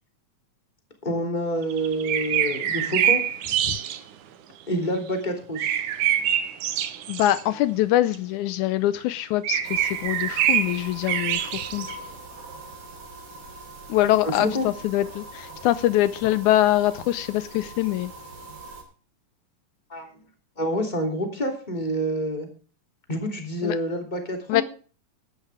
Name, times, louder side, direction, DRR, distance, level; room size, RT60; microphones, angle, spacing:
voice 1, 1.0-3.2 4.7-5.8 14.2-14.7 19.9-20.1 20.6-22.5 23.1-24.6, equal, 15° left, 3.1 m, -27 dB
sound 1, 1.6-4.0 5.6-7.4 8.1-8.2 9.0-9.1 9.4-12.0, right 10 dB, 85° right, 2.6 m, -25 dB
voice 2, 7.1-11.9 13.9-18.1 23.6-23.8 24.5-24.6, left 14 dB, 80° left, 2.1 m, -23 dB
sound 2, 9.6-18.8, right 2 dB, 50° right, 4.4 m, -42 dB
14.5 x 11.5 x 3.6 m
omnidirectional pair, 3.4 m